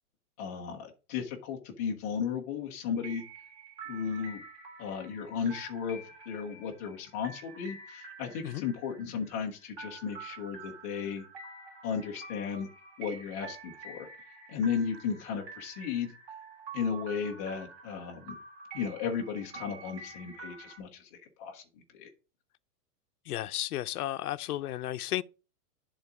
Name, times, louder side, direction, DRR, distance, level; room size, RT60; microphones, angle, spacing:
voice 1, 0.4-3.2 3.9-4.4 4.8-6.0 6.3-11.2 11.8-12.7 13.0-14.1 14.5-16.1 16.7-18.4 18.7-21.6 21.9-22.1, left 6 dB, 10° left, 0.5 m, -35 dB
sound 1, 3.0-20.8, right 4 dB, 35° right, 3.0 m, -48 dB
voice 2, 23.3-25.2, left 14 dB, 85° left, 0.6 m, -33 dB
10.5 x 3.9 x 4.7 m
supercardioid pair, 170°, 44 cm